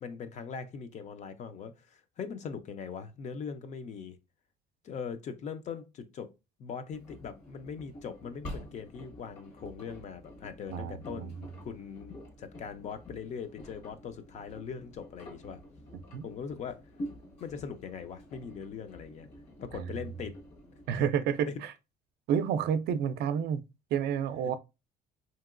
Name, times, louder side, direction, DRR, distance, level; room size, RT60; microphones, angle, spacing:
voice 1, 0.0-4.2 4.8-6.3 6.6-15.6 16.2-16.8 17.4-19.3 19.6-20.4 20.9-21.0 21.5-21.6, left 6 dB, 40° left, 0.4 m, -41 dB
Engine, 6.9-21.1, equal, 65° left, 1.4 m, -48 dB
voice 2, 10.7-11.3 16.1-16.3 19.7-19.9 20.9-21.7 22.3-23.6 23.9-24.5, right 8 dB, 65° right, 0.4 m, -30 dB
2.9 x 2.8 x 2.4 m
cardioid pair, 135°, 18 cm